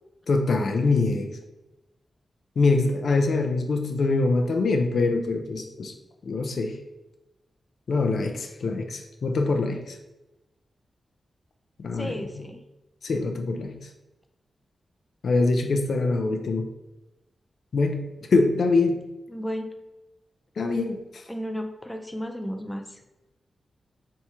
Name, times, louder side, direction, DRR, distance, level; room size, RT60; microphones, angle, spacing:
voice 1, 0.3-1.3 2.6-5.9 6.2-6.8 7.9-10.0 11.8-12.2 13.0-13.8 15.2-16.7 17.7-18.0 18.3-19.0 20.6-21.2, left 3 dB, 70° left, 3 dB, 0.5 m, -24 dB
voice 2, 11.9-12.6 19.3-19.8 21.3-23.0, equal, 10° left, 4 dB, 0.4 m, -33 dB
3.5 x 3.0 x 4.2 m, 1.0 s
wide cardioid pair, 95°, 0 cm